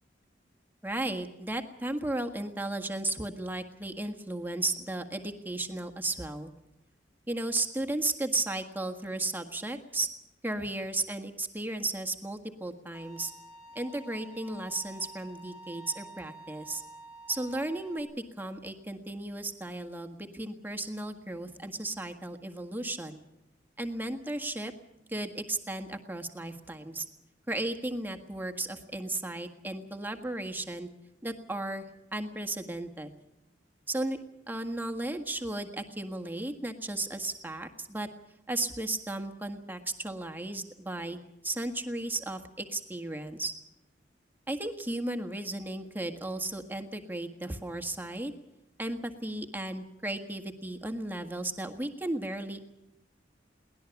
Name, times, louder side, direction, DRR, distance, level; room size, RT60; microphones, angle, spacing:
voice 1, 0.8-6.5 7.3-10.1 10.4-13.3 13.7-16.8 17.3-23.2 23.8-24.7 25.1-27.0 27.5-30.9 31.2-31.8 32.1-33.1 33.9-34.2 34.5-38.1 38.5-41.2 41.4-43.5 44.5-48.3 48.8-52.6, right 2 dB, 10° right, 5 dB, 1.6 m, -34 dB
Bowed string instrument, 12.9-18.0, right 1 dB, 50° left, 4.8 m, -49 dB
23.0 x 18.5 x 7.1 m, 0.90 s
head